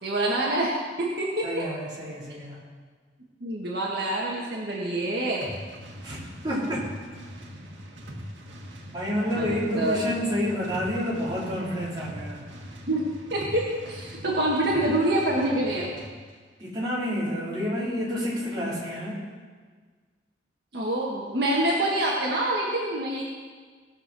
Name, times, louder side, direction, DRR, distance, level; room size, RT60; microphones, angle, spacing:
voice 1, 0.0-1.7 3.4-5.4 9.2-10.0 12.9-15.9 20.7-23.2, right 1 dB, 60° right, -3 dB, 1.7 m, -26 dB
voice 2, 1.4-2.6 6.0-6.9 8.9-12.4 16.6-19.2, equal, 25° right, -7 dB, 3.8 m, -29 dB
sound 1, 5.4-16.2, equal, 90° right, 1.7 m, -41 dB
18.0 x 6.5 x 6.3 m, 1.5 s
head